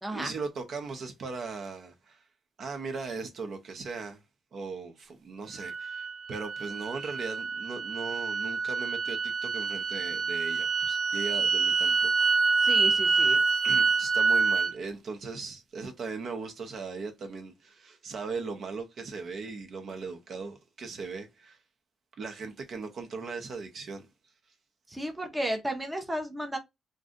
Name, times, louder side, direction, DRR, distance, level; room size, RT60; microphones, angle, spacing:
voice 1, 0.1-2.2 2.6-4.2 4.5-12.3 13.6-21.6 22.2-24.1, right 4 dB, 50° right, 0.6 m, -38 dB
sound 1, 5.6-14.7, right 4 dB, 70° right, 1.0 m, -27 dB
voice 2, 12.6-13.4 24.9-26.6, right 1 dB, 10° right, 0.6 m, -33 dB
2.6 x 2.2 x 3.7 m
cardioid pair, 150°, 0 cm